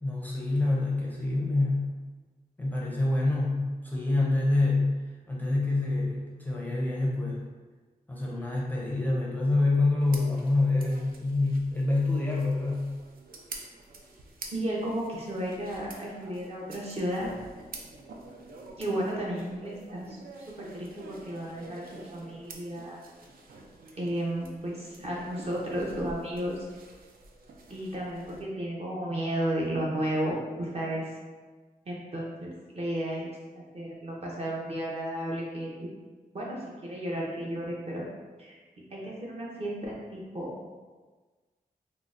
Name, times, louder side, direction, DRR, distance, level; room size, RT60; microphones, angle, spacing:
voice 1, 0.0-2.0 2.6-4.9 5.3-7.4 8.1-12.9, left 2 dB, 10° left, -5 dB, 0.5 m, -26 dB
sound 1, 10.0-28.4, right 3 dB, 80° right, 0.4 m, -48 dB
voice 2, 14.5-17.3 18.8-20.2 20.5-23.0 24.0-26.6 27.7-31.1 31.9-35.9 36.3-38.0 38.4-38.6 38.9-40.5, right 1 dB, 40° right, -4 dB, 0.7 m, -33 dB
3.6 x 2.0 x 2.5 m, 1.3 s
wide cardioid pair, 100°, 15 cm